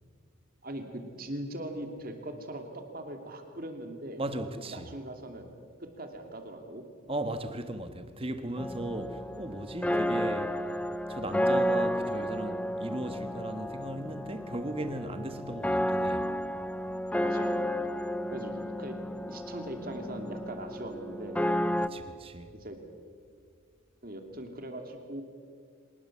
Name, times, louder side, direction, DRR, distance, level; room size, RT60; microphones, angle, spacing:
voice 1, 0.6-4.2 4.6-5.5 5.8-6.8 9.9-10.2 14.0-14.1 15.5-15.6 17.2-17.6 18.3-19.0 19.3-21.4 22.6-22.8 24.0-25.2, right 1 dB, 45° right, 2.7 m, -41 dB
voice 2, 4.2-4.9 7.1-10.5 11.1-16.3 21.9-22.5, right 1 dB, 25° right, 1.4 m, -37 dB
sound 1, 8.6-21.9, equal, 5° left, 0.6 m, -32 dB
25.5 x 19.5 x 7.4 m
head